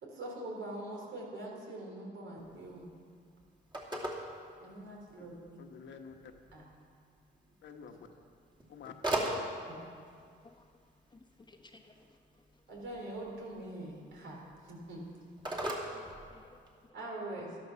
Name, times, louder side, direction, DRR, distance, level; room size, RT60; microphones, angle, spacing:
voice 1, 0.0-2.9 4.6-5.6 6.5-6.6 9.7-9.8 12.7-15.0 16.9-17.6, right 1 dB, 75° right, -1 dB, 3.6 m, -43 dB
Telephone, 2.4-16.9, right 1 dB, 25° right, 2.5 m, -42 dB
voice 2, 5.6-6.3 7.6-8.1 8.7-9.5, left 6 dB, 70° left, 4 dB, 1.3 m, -50 dB
voice 3, 10.4-10.8 11.1-12.6 15.8-17.0, left 2 dB, 20° left, 4 dB, 1.1 m, -59 dB
12.5 x 11.5 x 5.8 m, 2.2 s
cardioid pair, 90°, 20 cm